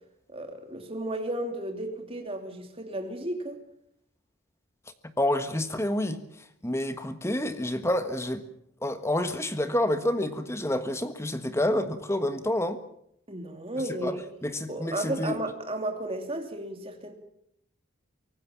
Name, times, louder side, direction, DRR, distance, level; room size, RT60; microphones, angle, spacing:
voice 1, 0.3-3.6 13.3-14.2 14.7-17.1, right 1 dB, 25° right, 3.2 m, -33 dB
voice 2, 5.2-6.2 6.6-8.4 8.8-12.8 13.9-15.4, left 1 dB, 15° left, 1.5 m, -28 dB
24.0 x 19.0 x 7.5 m
head